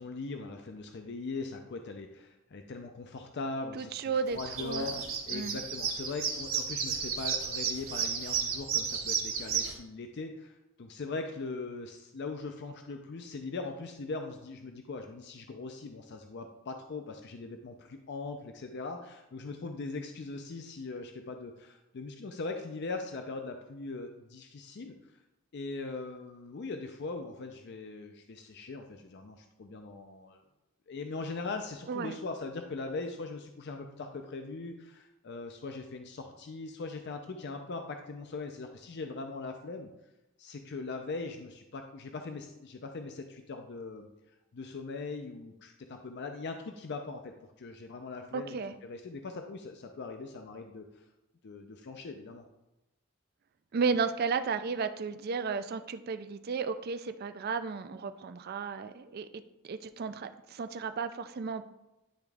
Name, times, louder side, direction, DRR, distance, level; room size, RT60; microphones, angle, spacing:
voice 1, 0.0-4.0 4.3-5.0 5.3-24.9 25.5-30.4 30.9-39.9 40.4-44.1 44.5-48.6 48.8-50.8 51.4-52.4, left 3 dB, 55° left, 5 dB, 0.5 m, -40 dB
voice 2, 3.7-4.9 5.3-5.6 31.9-32.2 48.3-48.7 53.7-59.3 59.6-61.7, right 5 dB, 50° right, 11 dB, 0.4 m, -33 dB
sound 1, 4.3-9.7, right 7 dB, 70° right, 1.4 m, -33 dB
10.0 x 3.5 x 3.4 m, 0.94 s
head